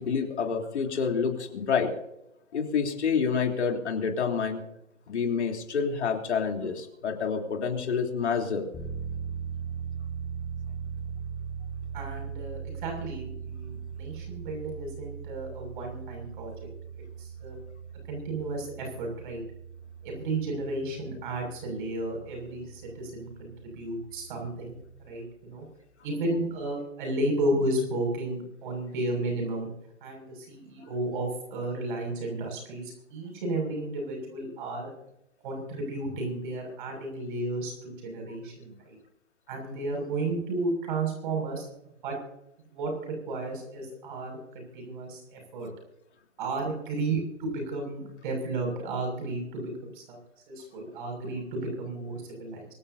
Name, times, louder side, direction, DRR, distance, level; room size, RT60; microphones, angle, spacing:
voice 1, 0.0-1.9 2.5-4.6 5.1-8.7, left 6 dB, 60° left, 3 dB, 3.6 m, -28 dB
sound 1, 8.7-25.1, right 7 dB, 10° left, 1.6 m, -40 dB
voice 2, 11.9-16.7 17.0-17.6 18.1-19.4 20.0-24.8 25.0-25.6 26.0-29.7 30.0-34.9 35.4-39.0 39.5-41.7 42.0-42.2 42.6-45.7 46.4-50.2 50.5-52.7, right 2 dB, 40° right, 2 dB, 6.7 m, -33 dB
24.5 x 16.0 x 2.8 m, 0.85 s
figure-of-eight pair, 135°, 38 cm